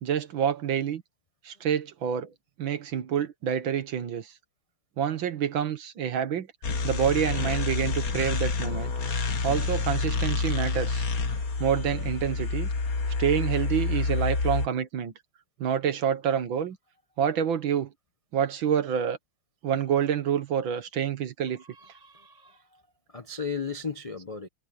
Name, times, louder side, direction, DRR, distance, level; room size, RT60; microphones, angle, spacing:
voice 1, 0.0-1.0 1.4-2.3 2.6-4.3 5.0-6.5 6.8-8.9 9.4-11.1 11.6-12.7 13.2-15.1 15.6-16.8 17.2-17.9 18.3-19.2 19.6-21.6, right 8 dB, 65° right, 2.0 m, -27 dB
sound 1, 6.6-14.7, left 4 dB, 45° left, 1.7 m, -28 dB
voice 2, 11.3-11.6 21.7-22.6 23.1-24.5, left 5 dB, 65° left, 0.3 m, -36 dB
omnidirectional pair, 2.3 m